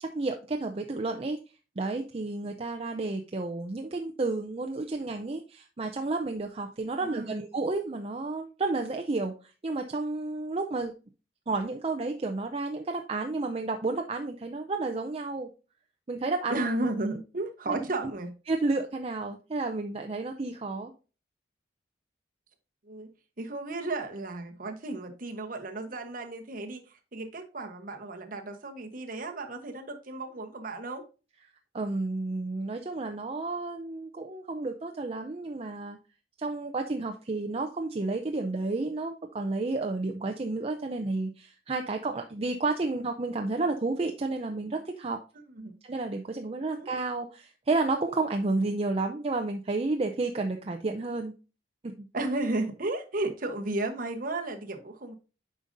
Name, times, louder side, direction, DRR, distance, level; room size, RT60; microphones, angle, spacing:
voice 1, 0.0-1.4 1.8-10.9 11.5-15.5 16.1-16.6 17.7-17.9 18.5-20.9 31.7-36.0 36.4-45.2 45.8-51.3 51.8-52.1, right 3 dB, 35° right, 0.5 m, -31 dB
voice 2, 7.0-7.4 16.5-18.4 22.8-23.1 23.4-31.0 45.5-45.8 46.8-47.0 52.1-55.1, right 2 dB, 50° right, 1.1 m, -34 dB
8.7 x 5.2 x 2.6 m
head